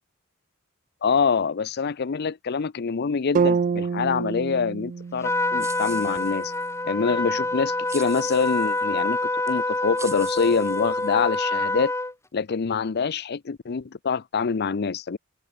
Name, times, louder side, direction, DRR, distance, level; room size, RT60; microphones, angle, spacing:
voice 1, 1.0-6.5 6.8-9.2 9.4-11.9 12.3-15.2, left 5 dB, 55° left, 0.5 m, -25 dB
sound 1, 3.3-7.4, right 5 dB, 40° right, 0.3 m, -28 dB
Trumpet, 5.2-12.1, left 2 dB, 15° left, 2.1 m, -26 dB
sound 2, 5.6-6.7 7.9-8.8 9.5-9.6 10.0-11.4, right 4 dB, 15° right, 5.5 m, -42 dB
open air
head